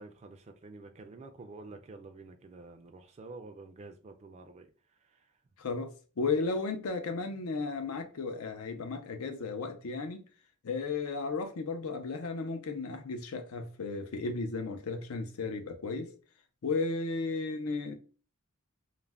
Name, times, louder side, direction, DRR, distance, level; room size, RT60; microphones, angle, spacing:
voice 1, 0.0-4.7, right 3 dB, 30° right, 0.3 m, -48 dB
voice 2, 5.6-5.9 6.2-10.2 10.6-16.1 16.6-17.9, left 4 dB, 85° left, 0.5 m, -34 dB
2.4 x 2.1 x 3.3 m
head